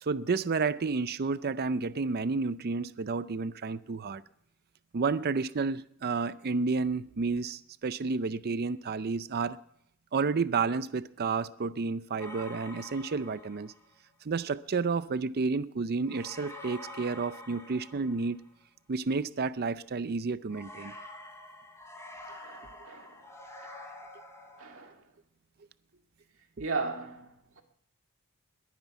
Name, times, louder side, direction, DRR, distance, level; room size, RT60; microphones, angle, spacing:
voice 1, 0.0-4.2 4.9-9.6 10.1-13.7 14.2-18.4 18.9-20.9, right 4 dB, 45° right, 0.5 m, -31 dB
sound 1, 12.2-13.9 16.0-18.6 20.5-24.9, left 1 dB, 15° left, 3.1 m, -47 dB
voice 2, 22.4-23.3 24.6-25.1 26.6-27.6, right 4 dB, 60° right, 2.0 m, -37 dB
21.0 x 9.6 x 5.9 m
head